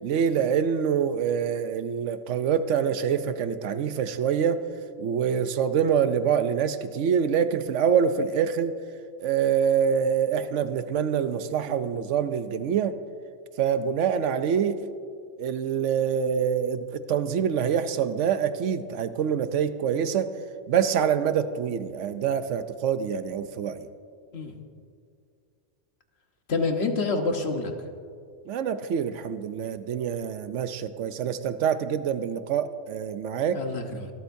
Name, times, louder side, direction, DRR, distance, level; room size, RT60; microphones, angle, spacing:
voice 1, 0.0-4.6 5.0-8.7 9.2-12.9 13.6-14.8 15.4-20.3 20.7-23.9 28.5-33.6, right 7 dB, 80° right, 11 dB, 1.0 m, -25 dB
voice 2, 26.5-27.7 33.5-34.1, left 3 dB, 60° left, 5 dB, 1.4 m, -27 dB
25.0 x 13.0 x 2.7 m, 2.3 s
omnidirectional pair, 1.2 m